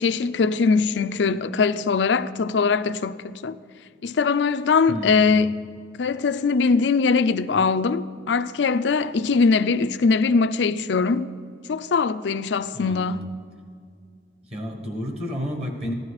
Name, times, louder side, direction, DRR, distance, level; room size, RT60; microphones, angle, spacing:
voice 1, 0.0-3.6 4.0-5.6 6.0-11.3 11.7-13.2, left 4 dB, 90° left, 0.5 m, -21 dB
voice 2, 4.9-5.4 12.7-13.2 14.5-15.9, equal, 35° right, 1.3 m, -31 dB
15.0 x 11.0 x 4.8 m
head